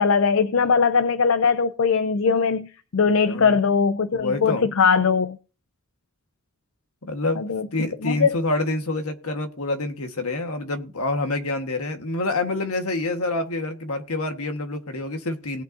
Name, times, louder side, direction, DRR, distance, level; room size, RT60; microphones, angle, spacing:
voice 1, 0.0-5.4 7.4-7.7 8.0-8.4, left 5 dB, 60° left, 0.5 m, -20 dB
voice 2, 3.1-3.6 4.1-4.7 7.0-7.4 7.7-15.6, left 2 dB, 75° left, 1.4 m, -27 dB
18.5 x 7.7 x 2.7 m
head